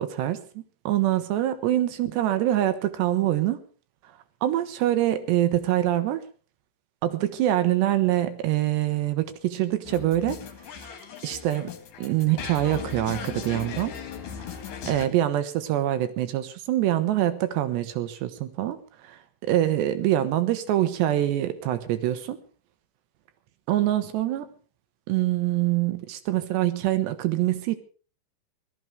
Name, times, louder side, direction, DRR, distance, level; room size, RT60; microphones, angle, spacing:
voice 1, 0.0-3.6 4.4-6.2 7.0-10.4 10.8-10.9 11.2-11.7 12.0-13.9 14.4-14.5 14.9-18.8 19.0-22.4 23.7-24.5 25.1-27.8, right 13 dB, 75° right, 11 dB, 3.0 m, -25 dB
sound 1, 9.8-15.1, left 7 dB, 55° left, 2.8 m, -38 dB
18.0 x 13.0 x 4.9 m, 0.39 s
omnidirectional pair, 5.5 m